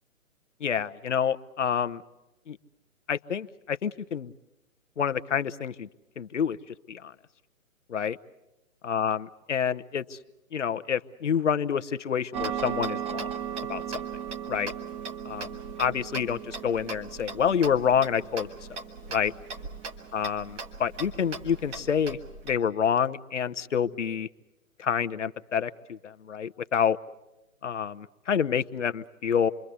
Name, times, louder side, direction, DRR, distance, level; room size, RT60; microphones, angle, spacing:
voice 1, 0.6-2.0 2.5-2.6 3.1-4.3 5.0-5.9 6.2-6.6 6.9-7.1 7.9-8.2 8.8-10.2 10.5-13.3 13.7-13.8 14.5-14.7 15.2-18.8 19.1-19.3 20.1-22.2 22.4-24.3 24.8-27.0 27.6-29.5, left 7 dB, 60° left, 12 dB, 1.0 m, -28 dB
Tick-tock, 12.3-22.6, right 6 dB, 15° right, 1.3 m, -37 dB
27.0 x 23.0 x 8.2 m, 0.99 s
figure-of-eight pair, 130°, 41 cm